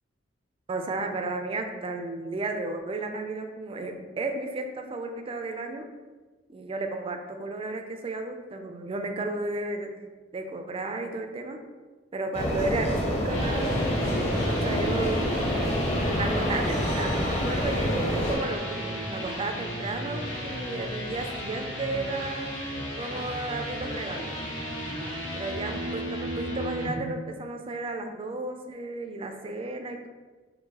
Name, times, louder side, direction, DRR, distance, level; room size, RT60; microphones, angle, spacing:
voice 1, 0.7-5.9 6.5-10.0 10.3-11.6 12.1-13.8 14.5-15.2 16.0-22.6 23.0-24.3 25.3-30.1, right 2 dB, 30° right, 5 dB, 0.4 m, -33 dB
sound 1, 12.3-18.4, equal, 35° left, 0.8 m, -27 dB
sound 2, 13.1-26.9, equal, 70° left, 1.2 m, -34 dB
4.5 x 2.6 x 2.8 m, 1.3 s
head